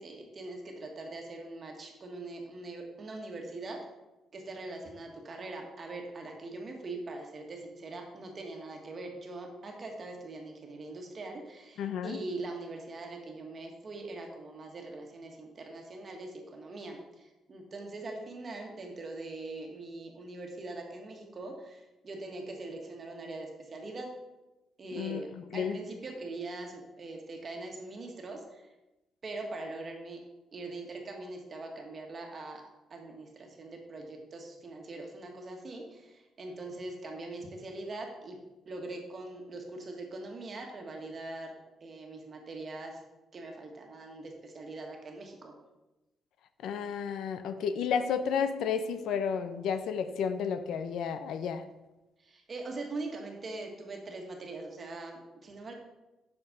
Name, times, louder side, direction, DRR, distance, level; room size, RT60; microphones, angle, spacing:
voice 1, 0.0-3.8 4.3-24.1 24.8-28.7 29.2-30.2 30.5-32.6 32.9-41.5 41.8-43.0 43.3-45.5 52.2-55.7, right 2 dB, 35° right, 2 dB, 1.5 m, -42 dB
voice 2, 11.8-12.2 24.9-25.8 46.6-51.6, left 7 dB, 75° left, 10 dB, 0.6 m, -32 dB
7.9 x 5.9 x 5.0 m, 1.0 s
cardioid pair, 145°, 0 cm